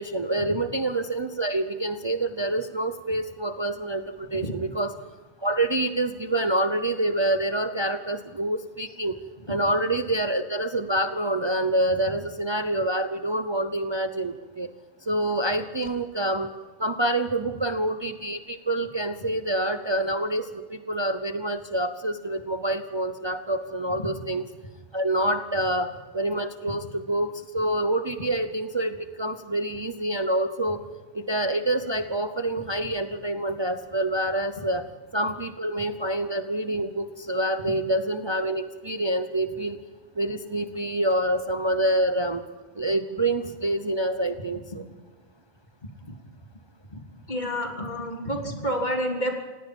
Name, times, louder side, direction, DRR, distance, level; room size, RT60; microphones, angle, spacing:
voice 1, 0.0-5.0 5.4-9.1 9.5-14.7 15.1-16.5 16.8-24.4 24.9-30.8 31.1-34.9 35.1-39.8 40.2-42.4 42.8-44.8, right 1 dB, 25° right, 8 dB, 0.9 m, -27 dB
voice 2, 47.3-49.3, equal, 45° left, 1 dB, 3.4 m, -29 dB
29.0 x 17.5 x 5.4 m, 1.4 s
omnidirectional pair, 1.1 m